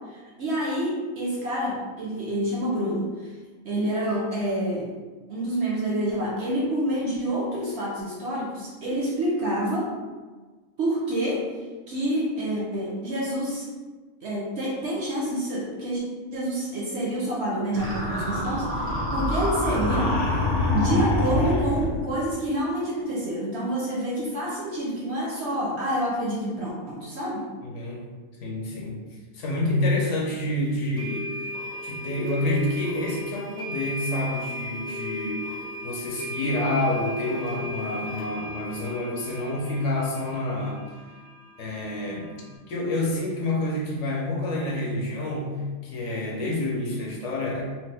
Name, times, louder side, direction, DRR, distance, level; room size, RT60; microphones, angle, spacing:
voice 1, 0.1-3.3 3.6-4.9 5.3-9.9 10.8-11.6 11.9-13.7 14.2-16.0 16.3-20.4 20.7-27.5, right 1 dB, 65° right, -3 dB, 0.7 m, -28 dB
sound 1, 17.7-22.1, left 1 dB, 20° right, 0.3 m, -25 dB
voice 2, 27.6-28.0 28.4-29.0 29.3-31.4 31.8-35.5 35.8-40.8 41.6-42.4 42.7-45.6 45.8-47.6, left 1 dB, 65° left, -2 dB, 0.9 m, -28 dB
sound 2, 30.0-30.1 31.0-42.5, left 1 dB, 30° left, 0.7 m, -36 dB
3.0 x 2.2 x 3.2 m, 1.4 s
omnidirectional pair, 1.5 m